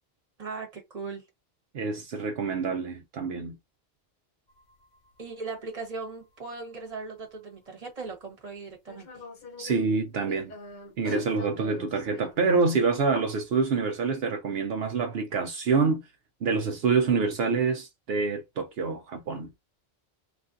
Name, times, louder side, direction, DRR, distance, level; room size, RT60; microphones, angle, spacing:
voice 1, 0.4-1.2 5.2-9.2, right 4 dB, 40° right, 1.2 m, -38 dB
voice 2, 1.7-3.6 9.6-10.5 11.0-16.0 16.4-19.5, right 4 dB, 75° right, 0.8 m, -26 dB
sound 1, 4.5-6.1 6.9-7.0 8.0-8.1 8.7-12.6 13.2-13.8, left 3 dB, 50° left, 0.9 m, -43 dB
3.2 x 2.4 x 2.5 m
omnidirectional pair, 1.1 m